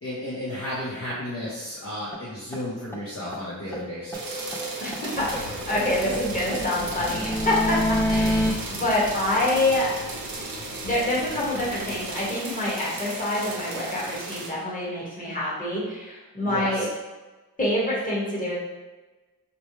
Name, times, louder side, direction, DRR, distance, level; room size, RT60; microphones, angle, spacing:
voice 1, 0.0-4.4 16.4-16.8, left 1 dB, 40° left, -8 dB, 0.8 m, -33 dB
sound 1, 2.1-2.2 2.5-2.6 2.9-3.0 3.3-3.4 3.7-5.0 5.3-8.5, equal, 5° left, 0.4 m, -28 dB
sound 2, 4.1-14.5, right 3 dB, 80° right, 0.7 m, -36 dB
voice 2, 4.8-7.8 8.1-9.9 10.6-16.8 17.6-18.6, left 1 dB, 25° left, -7 dB, 1.4 m, -26 dB
sound 3, 5.1-12.3, left 1 dB, 75° left, 0.7 m, -41 dB
4.3 x 2.2 x 3.1 m, 1.2 s
wide cardioid pair, 90°, 35 cm